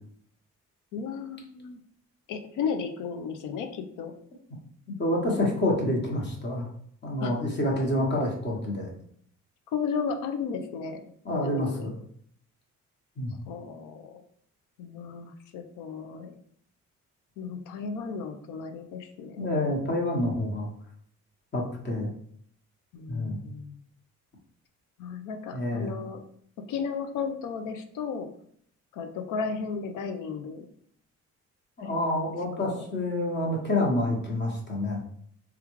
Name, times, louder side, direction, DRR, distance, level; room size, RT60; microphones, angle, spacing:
voice 1, 0.9-1.8 2.3-4.1 7.2-7.3 9.7-11.9 13.5-14.2 14.8-16.3 17.4-19.5 22.9-23.8 25.0-26.2 26.7-28.3 28.9-30.7 31.8-32.2 32.6-32.9, left 5 dB, 85° left, 6 dB, 0.5 m, -34 dB
voice 2, 5.0-6.7 7.0-8.9 11.2-11.9 13.2-13.3 19.4-20.7 21.5-22.1 23.1-23.5 25.5-25.9 31.8-35.0, left 1 dB, 35° left, -1 dB, 1.1 m, -28 dB
3.5 x 2.3 x 3.0 m, 0.63 s
cardioid pair, 90°, 30 cm